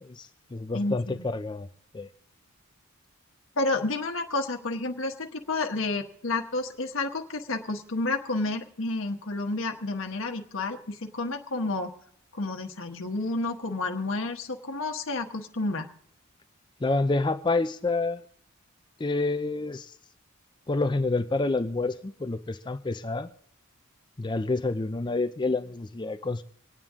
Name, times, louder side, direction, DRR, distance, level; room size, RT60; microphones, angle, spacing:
voice 1, 0.0-1.7 1.9-2.1 16.8-18.2 19.0-19.9 20.7-23.3 24.2-26.4, left 3 dB, 20° left, 10 dB, 0.5 m, -28 dB
voice 2, 0.7-1.3 3.6-11.9 12.3-15.9, left 2 dB, 60° left, 4 dB, 1.2 m, -30 dB
25.5 x 8.9 x 3.7 m, 0.69 s
head